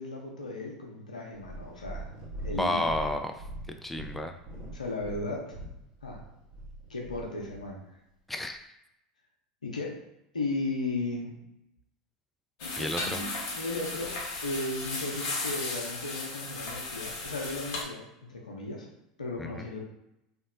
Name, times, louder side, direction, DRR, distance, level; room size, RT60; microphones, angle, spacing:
voice 1, 0.0-2.1 2.4-2.8 4.7-5.6 6.0-6.2 6.9-7.8 9.6-10.0 10.3-11.4 12.6-18.9 19.2-19.8, left 2 dB, 90° left, -1 dB, 0.7 m, -36 dB
Purr, 1.3-7.7 8.4-8.5, right 1 dB, 40° right, 1.2 m, -42 dB
voice 2, 2.5-3.4 3.8-4.3 8.3-8.8 12.8-13.2 19.4-19.6, left 1 dB, 5° left, 5 dB, 0.3 m, -31 dB
sound 1, 12.6-17.8, left 3 dB, 55° left, 0.9 m, -35 dB
3.0 x 2.7 x 2.6 m, 0.84 s
hypercardioid pair, 80°, 4 cm